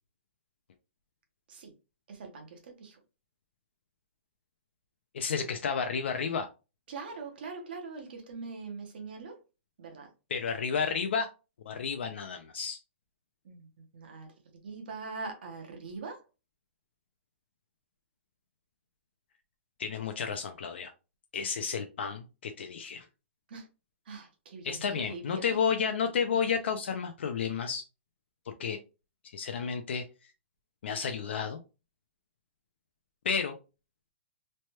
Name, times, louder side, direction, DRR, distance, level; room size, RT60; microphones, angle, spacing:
voice 1, 2.1-3.0 6.9-9.4 9.8-10.1 13.4-13.7 13.9-14.3 14.6-16.2 23.5-23.7 24.1-25.4, right 4 dB, 45° right, 0.7 m, -42 dB
voice 2, 5.1-6.5 10.3-11.3 11.7-12.8 19.8-20.9 21.3-23.1 24.6-27.8 28.6-28.8 29.3-30.0 30.8-31.6 33.2-33.5, left 6 dB, 60° left, 0.4 m, -31 dB
3.2 x 2.2 x 2.8 m
hypercardioid pair, 175°, 7 cm